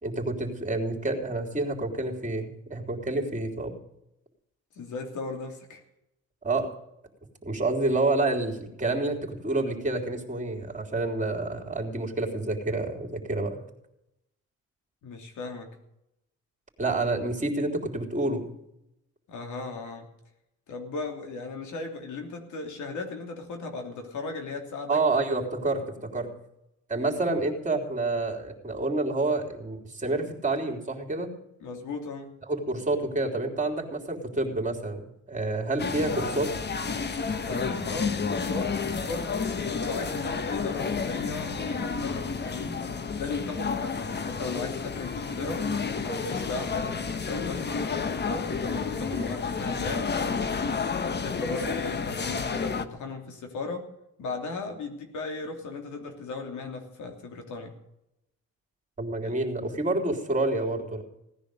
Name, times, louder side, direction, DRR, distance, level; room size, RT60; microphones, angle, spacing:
voice 1, 0.0-3.7 6.4-6.7 7.4-13.6 16.8-18.5 24.9-26.3 26.9-31.3 32.5-36.5 49.1-49.2 59.0-61.0, right 2 dB, 25° right, 2 dB, 3.6 m, -28 dB
voice 2, 4.7-5.8 15.0-15.7 19.3-20.0 20.7-25.0 31.6-32.3 37.4-42.8 43.2-45.7 46.0-50.1 51.1-53.9 54.2-57.7 59.2-59.4, left 3 dB, 80° left, 3 dB, 3.1 m, -36 dB
sound 1, 35.8-52.8, left 5 dB, 35° left, 1.2 m, -30 dB
17.5 x 10.0 x 6.8 m, 0.84 s
cardioid pair, 90°, 30 cm